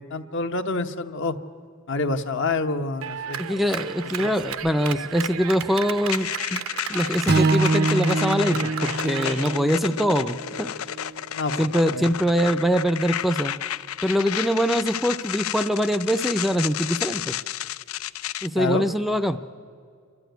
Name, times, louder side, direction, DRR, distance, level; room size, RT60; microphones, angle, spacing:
voice 1, 0.0-1.4 1.9-3.4 4.2-4.3 11.3-12.1 18.5-18.9, left 3 dB, 60° left, 8 dB, 1.0 m, -27 dB
Clapping, 3.0-9.6, right 7 dB, 80° right, 0.7 m, -34 dB
voice 2, 3.4-6.6 6.9-10.7 11.6-13.5 14.0-17.4 18.4-19.4, equal, ahead, 11 dB, 0.5 m, -23 dB
sound 1, 6.1-18.5, left 11 dB, 85° left, 0.5 m, -31 dB
Strum, 7.3-11.6, right 3 dB, 50° right, 0.5 m, -26 dB
28.0 x 12.5 x 9.2 m, 2.3 s
head